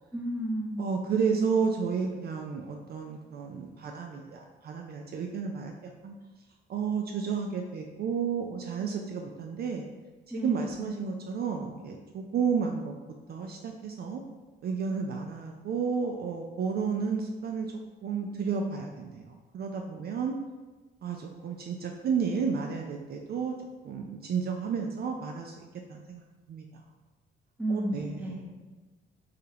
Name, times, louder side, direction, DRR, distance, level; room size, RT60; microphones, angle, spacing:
voice 1, 0.1-0.8 10.3-10.8 27.6-28.5, right 1 dB, 5° right, -1 dB, 0.8 m, -32 dB
voice 2, 0.8-6.1 6.7-9.9 10.4-12.9 13.3-14.2 14.6-17.7 18.0-20.3 21.0-23.5 23.8-26.2 26.5-26.6 27.7-28.3, right 6 dB, 50° right, 2 dB, 0.4 m, -32 dB
4.8 x 2.3 x 2.9 m, 1.3 s
cardioid pair, 90°, 20 cm